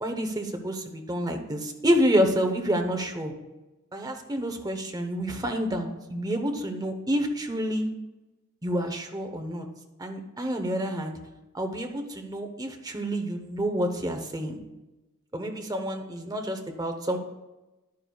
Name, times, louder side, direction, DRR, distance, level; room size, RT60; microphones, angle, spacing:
voice 1, 0.0-3.3 3.9-7.9 8.6-9.7 10.0-11.2 11.5-14.6 15.3-17.2, equal, 15° right, 4 dB, 0.8 m, -28 dB
11.0 x 9.6 x 2.3 m, 1.1 s
head